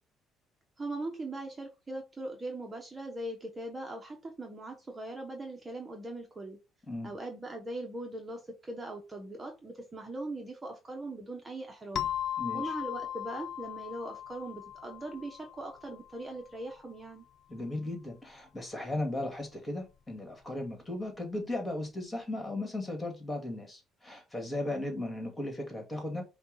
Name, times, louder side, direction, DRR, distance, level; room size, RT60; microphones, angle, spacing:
voice 1, 0.8-6.6 7.0-12.1 12.5-17.2, right 2 dB, 25° right, 1.1 m, -40 dB
sound 1, 11.9-16.3, left 10 dB, 55° left, 0.4 m, -38 dB
voice 2, 12.4-12.7 17.5-26.2, left 1 dB, 20° left, 2.0 m, -36 dB
5.3 x 2.4 x 4.0 m
cardioid pair, 90°, 0 cm